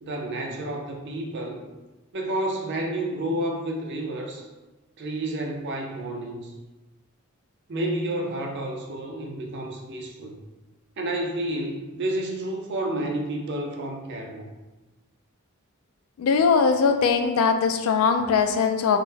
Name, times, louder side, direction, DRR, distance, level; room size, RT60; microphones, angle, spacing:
voice 1, 0.0-1.6 2.1-4.5 5.0-6.5 7.7-10.4 11.0-14.5, right 1 dB, 55° right, 1 dB, 0.5 m, -30 dB
voice 2, 16.2-19.0, left 5 dB, 70° left, 7 dB, 0.3 m, -21 dB
3.6 x 2.1 x 2.7 m, 1.1 s
head